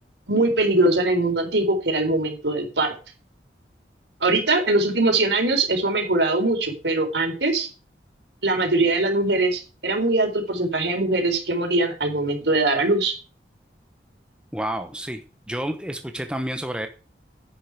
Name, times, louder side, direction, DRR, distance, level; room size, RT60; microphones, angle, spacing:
voice 1, 0.3-2.9 4.2-7.7 8.4-13.1, right 2 dB, 80° right, 4 dB, 4.0 m, -22 dB
voice 2, 14.5-15.2 15.5-16.9, right 1 dB, 5° right, 6 dB, 1.0 m, -29 dB
10.0 x 10.0 x 4.9 m, 0.34 s
head